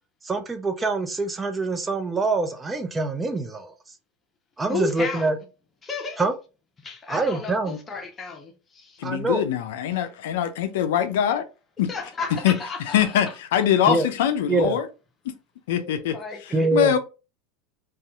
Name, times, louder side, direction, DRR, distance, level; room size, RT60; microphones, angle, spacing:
voice 1, 0.2-3.7 4.6-5.4 6.2-6.3 7.1-7.8 9.0-9.4 13.9-14.1 14.5-14.8 16.5-17.0, right 3 dB, 20° right, 0.4 m, -24 dB
voice 2, 4.7-5.3 5.8-6.3 6.8-9.0 11.9-13.1 15.8-16.9, left 3 dB, 25° left, 0.7 m, -33 dB
voice 3, 9.0-11.5 11.8-11.9 12.4-12.6 12.9-14.9 15.7-17.0, left 10 dB, 75° left, 0.3 m, -23 dB
2.6 x 2.3 x 2.3 m
hypercardioid pair, 95°, 0 cm